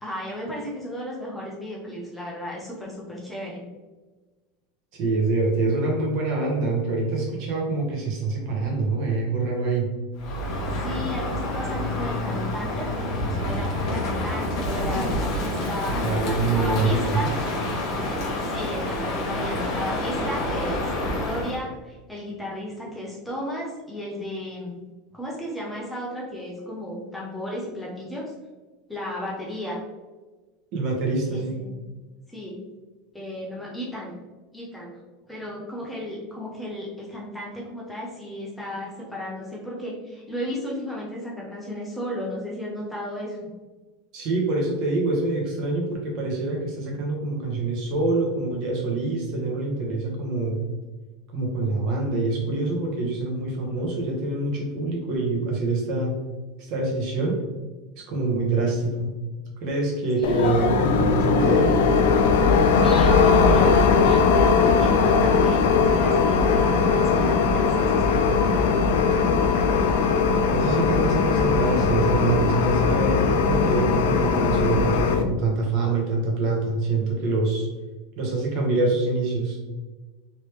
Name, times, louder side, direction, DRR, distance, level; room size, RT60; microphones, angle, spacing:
voice 1, 0.0-3.6 10.8-17.3 18.5-24.8 25.1-28.3 28.9-29.8 31.3-31.8 32.3-32.6 33.1-34.2 34.5-35.0 35.3-43.5 60.2-60.7 62.8-68.0 68.3-68.8, left 1 dB, 5° left, -4 dB, 0.6 m, -34 dB
voice 2, 4.9-9.9 16.0-17.3 30.7-31.5 44.1-50.6 51.3-56.1 56.6-57.4 58.0-59.1 59.6-61.7 70.5-77.7 78.2-79.6, right 3 dB, 45° right, -1 dB, 0.9 m, -25 dB
Crow, 10.2-21.6, left 1 dB, 35° left, 0.9 m, -28 dB
sound 1, 60.2-75.2, left 5 dB, 80° left, 0.4 m, -19 dB
3.2 x 3.0 x 3.0 m, 1.2 s
supercardioid pair, 165°, 0 cm